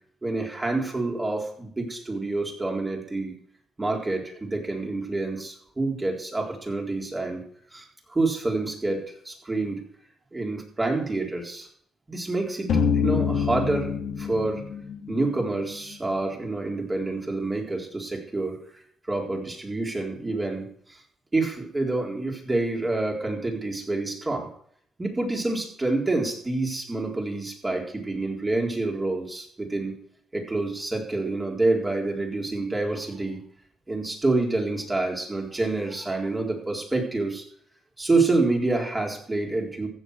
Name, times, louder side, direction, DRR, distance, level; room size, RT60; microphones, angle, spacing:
voice 1, 0.2-3.3 3.8-7.4 7.7-9.8 10.3-11.7 12.1-12.7 13.0-13.9 14.2-14.6 15.1-18.6 19.1-20.7 21.3-24.5 25.0-30.0 30.3-33.4 33.9-37.4 38.0-39.9, right 2 dB, 20° right, 0 dB, 3.9 m, -27 dB
sound 1, 12.7-15.6, left 6 dB, 70° left, 2.5 m, -25 dB
15.5 x 7.1 x 6.5 m, 0.62 s
cardioid pair, 90°, 0 cm